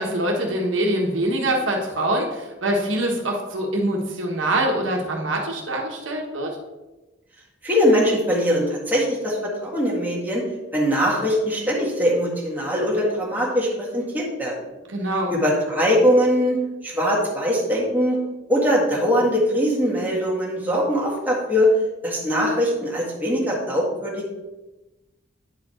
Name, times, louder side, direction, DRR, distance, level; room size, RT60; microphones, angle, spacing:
voice 1, 0.0-6.6 14.9-15.3, right 1 dB, 85° right, 0 dB, 1.4 m, -24 dB
voice 2, 7.6-10.5 10.7-14.7 15.3-18.2 18.5-21.7 22.0-24.3, equal, 10° right, -5 dB, 1.9 m, -21 dB
9.7 x 4.6 x 4.4 m, 1.1 s
head